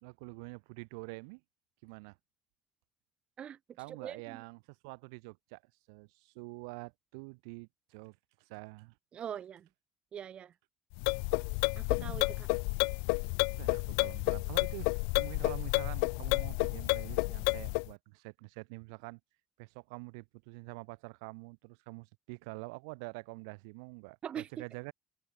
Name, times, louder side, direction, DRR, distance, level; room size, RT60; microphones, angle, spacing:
voice 1, 0.0-1.4 1.8-2.2 3.8-5.6 5.9-8.2 8.5-8.9 13.6-19.2 19.6-24.9, right 30 dB, 65° right, 2.0 m, -46 dB
voice 2, 3.9-4.4 9.1-9.7 10.1-10.5 11.8-12.5 24.2-24.5, right 9 dB, 40° right, 1.6 m, -42 dB
sound 1, 11.0-17.9, left 40 dB or more, 65° left, 1.7 m, -31 dB
open air
figure-of-eight pair, 55°, 3 cm